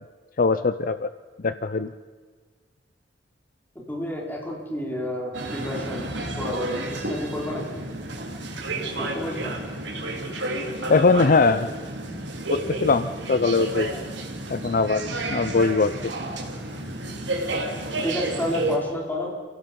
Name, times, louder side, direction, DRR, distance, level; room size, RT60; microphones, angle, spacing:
voice 1, 0.4-1.1 1.4-1.9 10.9-11.7 12.5-13.9 14.5-15.0 15.3-16.1, left 4 dB, 50° left, 12 dB, 0.6 m, -21 dB
voice 2, 3.9-7.8 8.7-9.5 18.0-19.5, left 1 dB, 10° left, -2 dB, 4.8 m, -31 dB
sound 1, 5.3-18.8, right 2 dB, 90° right, 3.4 m, -31 dB
29.0 x 17.0 x 5.4 m, 1.5 s
head